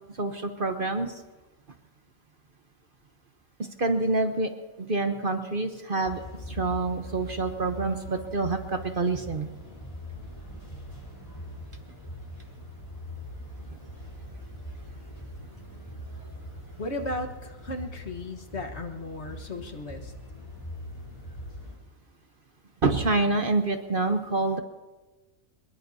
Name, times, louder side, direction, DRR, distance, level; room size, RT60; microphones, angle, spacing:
voice 1, 0.2-1.1 3.6-4.5 4.8-9.5 22.8-24.6, right 3 dB, 40° right, 6 dB, 1.1 m, -27 dB
sound 1, 6.0-21.8, equal, 25° left, 3.3 m, -42 dB
voice 2, 16.8-20.1, left 2 dB, 55° left, 5 dB, 1.6 m, -35 dB
24.0 x 21.5 x 2.8 m, 1.2 s
omnidirectional pair, 1.5 m